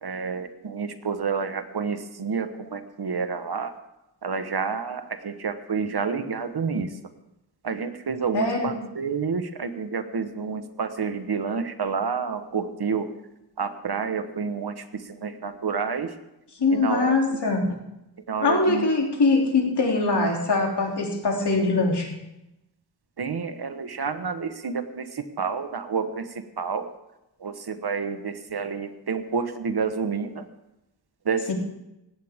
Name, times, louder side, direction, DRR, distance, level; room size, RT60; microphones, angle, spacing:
voice 1, 0.0-3.7 4.2-6.9 7.6-13.0 13.6-14.7 15.2-16.1 16.7-17.1 18.3-18.8 23.2-25.0 25.4-26.2 26.6-26.9 27.4-30.4 31.3-31.5, right 5 dB, 65° right, 9 dB, 1.4 m, -29 dB
voice 2, 8.3-8.8 16.6-17.8 18.4-22.1 31.5-31.6, left 3 dB, 75° left, 0 dB, 3.3 m, -22 dB
19.0 x 16.5 x 3.7 m, 0.89 s
wide cardioid pair, 115°, 41 cm